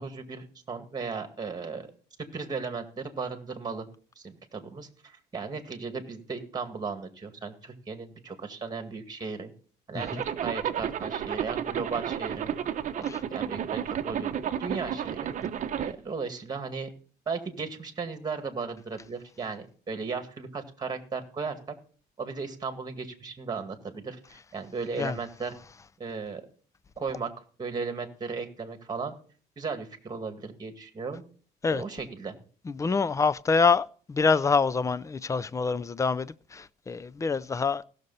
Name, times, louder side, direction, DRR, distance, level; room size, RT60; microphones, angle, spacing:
voice 1, 0.0-1.9 2.2-3.9 4.2-9.5 9.9-12.5 13.0-14.3 14.6-15.3 15.8-16.9 17.3-21.8 22.2-25.6 26.0-26.4 27.0-27.3 27.6-29.2 29.6-31.2 31.7-32.3, right 4 dB, 25° right, 1.9 m, -36 dB
Zipper (clothing), 10.0-15.9, right 9 dB, 45° right, 0.8 m, -32 dB
voice 2, 32.7-37.8, left 5 dB, 20° left, 0.4 m, -26 dB
17.0 x 6.6 x 4.1 m
cardioid pair, 110°, 17 cm